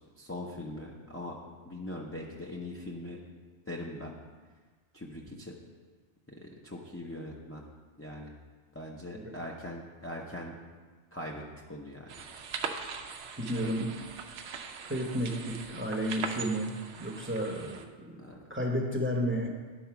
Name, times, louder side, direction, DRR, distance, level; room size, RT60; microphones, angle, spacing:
voice 1, 0.2-1.4 1.6-3.2 3.7-4.2 4.9-5.5 6.3-7.6 8.0-8.4 8.7-10.5 11.1-12.1 18.2-18.4, left 1 dB, 15° left, -3 dB, 0.5 m, -41 dB
sound 1, 12.1-17.9, right 6 dB, 75° right, 0.9 m, -41 dB
voice 2, 13.4-13.9 14.9-18.2 18.5-19.5, equal, 10° right, 0 dB, 0.8 m, -32 dB
9.9 x 4.1 x 5.8 m, 1.4 s
omnidirectional pair, 1.2 m